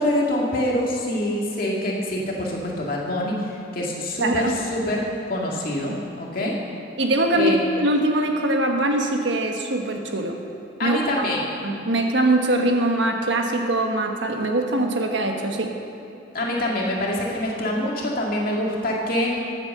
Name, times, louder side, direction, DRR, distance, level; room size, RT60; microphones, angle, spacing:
voice 1, 0.0-6.6 7.3-7.6 10.8-11.4 16.3-19.3, left 1 dB, 50° left, -3 dB, 2.2 m, -25 dB
voice 2, 4.2-4.5 7.0-7.5 7.8-10.4 10.8-11.0 11.6-15.7, right 1 dB, 75° right, 3 dB, 1.4 m, -22 dB
14.0 x 8.1 x 6.7 m, 2.8 s
head